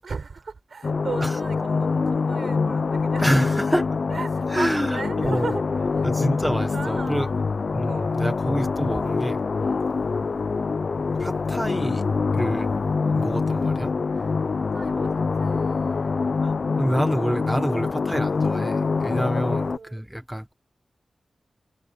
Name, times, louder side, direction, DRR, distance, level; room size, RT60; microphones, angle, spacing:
voice 1, 0.0-3.4 4.1-6.1 6.4-7.4 7.8-8.2 9.6-10.0 13.0-13.2 14.1-14.3 14.7-16.5 19.2-20.0, right 4 dB, 55° right, 7.1 m, -37 dB
sound 1, 0.8-19.8, left 4 dB, 50° left, 0.4 m, -25 dB
voice 2, 3.2-4.0 4.5-5.5 6.0-7.3 7.7-9.4 11.1-12.0 12.3-12.8 13.1-13.9 16.4-20.5, equal, 5° right, 1.0 m, -27 dB
wide cardioid pair, 160°, 0 cm